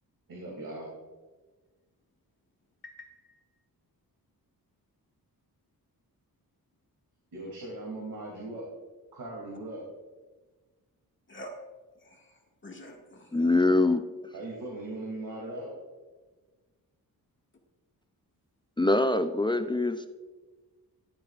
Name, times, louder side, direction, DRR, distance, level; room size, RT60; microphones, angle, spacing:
voice 1, 0.3-0.9 7.3-8.7 9.1-9.8 14.3-15.7, right 2 dB, 70° right, -4 dB, 2.6 m, -39 dB
voice 2, 2.8-3.4 11.3-11.5 12.0-13.4, equal, 30° left, 0 dB, 1.9 m, -47 dB
voice 3, 13.3-14.0 18.8-20.1, left 2 dB, 15° left, 8 dB, 0.4 m, -24 dB
13.0 x 10.5 x 2.5 m, 1.3 s
wide cardioid pair, 105°, 37 cm